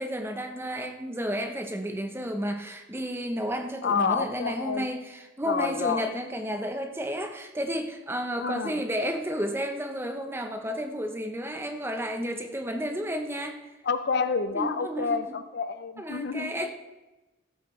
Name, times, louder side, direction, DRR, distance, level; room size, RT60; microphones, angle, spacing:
voice 1, 0.0-13.7 14.5-15.2 16.0-16.7, equal, 10° right, 5 dB, 0.7 m, -32 dB
voice 2, 3.8-4.9 5.5-6.1 8.4-8.8 13.8-16.7, left 5 dB, 55° left, 11 dB, 0.5 m, -29 dB
15.0 x 7.9 x 3.2 m, 1.1 s
head